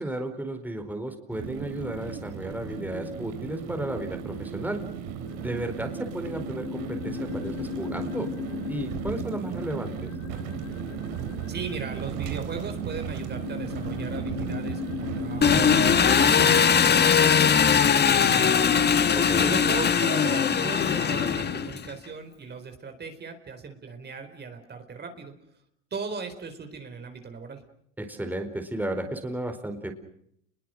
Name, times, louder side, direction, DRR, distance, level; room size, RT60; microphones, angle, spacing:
voice 1, 0.0-4.8 5.4-8.3 8.7-10.1 19.3-19.6 28.0-29.9, right 1 dB, 5° right, 5 dB, 4.5 m, -33 dB
sound 1, 1.3-16.8, right 8 dB, 65° right, 4.1 m, -35 dB
sound 2, 5.3-21.6, left 7 dB, 50° left, 2.9 m, -38 dB
voice 2, 11.5-19.2 19.5-25.3 25.9-27.6, right 5 dB, 30° right, 6 dB, 4.3 m, -38 dB
Engine, 15.4-21.9, left 7 dB, 30° left, 1.6 m, -20 dB
30.0 x 22.0 x 6.5 m, 0.71 s
hypercardioid pair, 90°, 34 cm